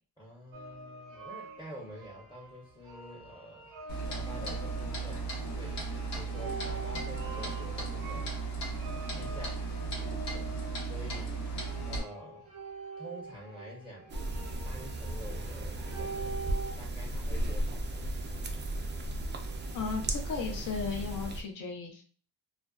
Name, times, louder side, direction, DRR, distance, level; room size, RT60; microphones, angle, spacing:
voice 1, 0.2-3.7 4.0-8.4 8.7-9.6 10.0-10.5 10.9-11.4 11.9-12.5 13.0-14.2 14.6-18.1, equal, 10° left, -4 dB, 0.7 m, -48 dB
sound 1, 0.5-16.7, right 4 dB, 90° right, 0.6 m, -45 dB
Clock, 3.9-12.0, right 3 dB, 75° left, 0.9 m, -36 dB
sound 2, 14.1-21.4, right 1 dB, 30° right, 0.3 m, -35 dB
voice 2, 19.7-22.0, left 5 dB, 50° left, 1 dB, 0.6 m, -35 dB
2.4 x 2.2 x 2.3 m, 0.43 s
cardioid pair, 85°, 41 cm